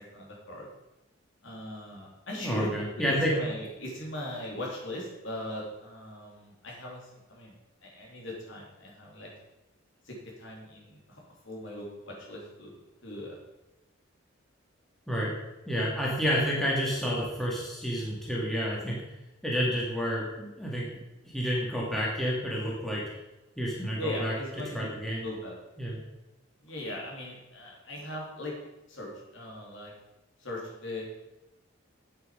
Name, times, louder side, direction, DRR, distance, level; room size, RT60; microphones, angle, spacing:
voice 1, 0.1-0.7 1.4-2.7 3.0-7.5 7.8-9.3 10.1-13.4 24.0-24.9 25.2-25.5 26.6-28.5 28.9-29.9 30.4-31.1, left 1 dB, 65° left, -2 dB, 3.5 m, -39 dB
voice 2, 2.4-3.3 15.1-15.3 15.7-19.0 19.4-20.9 21.2-23.0 23.6-24.3 24.7-25.3 25.8-26.0, equal, ahead, -5 dB, 2.1 m, -30 dB
9.5 x 8.8 x 5.2 m, 0.99 s
head